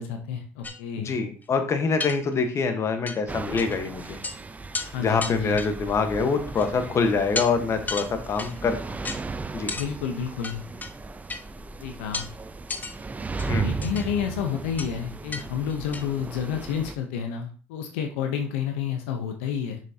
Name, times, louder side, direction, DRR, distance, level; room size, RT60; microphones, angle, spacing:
voice 1, 0.0-1.1 4.8-5.6 9.7-10.6 11.8-12.3 13.5-19.8, left 8 dB, 90° left, 5 dB, 0.9 m, -30 dB
sound 1, 0.6-0.8 1.4-1.5 2.0-2.6 3.1-3.2 3.6-3.8 4.0-4.4 4.7-4.9 5.2-6.0 6.6-6.9 7.4-7.5 7.9-8.6 9.0-9.2 9.7-9.9 10.4-10.9 11.3-11.4 12.1-12.3 12.7-12.9 13.4-14.1 14.8-14.9 15.3-15.4 15.7-16.1, left 3 dB, 25° left, 0.9 m, -33 dB
voice 2, 1.0-4.2 5.0-9.1 9.5-9.7 13.5-13.7, left 4 dB, 45° left, 7 dB, 1.3 m, -25 dB
sound 2, 3.3-17.0, right 4 dB, 25° right, 0.7 m, -36 dB
6.4 x 6.2 x 2.9 m, 0.38 s
supercardioid pair, 70°, 7 cm